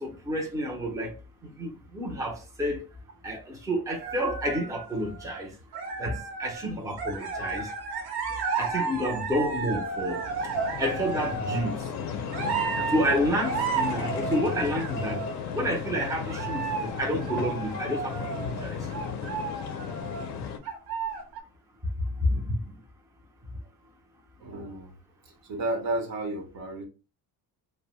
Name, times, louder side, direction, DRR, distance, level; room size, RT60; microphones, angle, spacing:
voice 1, 0.0-1.1 1.4-2.8 3.2-5.5 6.0-7.7 8.6-10.2 10.8-11.8 12.9-15.2 15.5-18.8 22.3-22.6, equal, 10° right, 0.5 m, -29 dB
sound 1, 4.0-5.4 5.7-6.7 7.0-11.7 12.3-15.6 16.3-20.3 20.6-21.4, right 5 dB, 85° right, 1.0 m, -33 dB
sound 2, 9.8-20.6, left 6 dB, 45° left, 0.5 m, -35 dB
voice 2, 24.4-24.9 25.5-26.9, right 1 dB, 60° right, 0.9 m, -32 dB
2.6 x 2.1 x 2.9 m
cardioid pair, 140°, 39 cm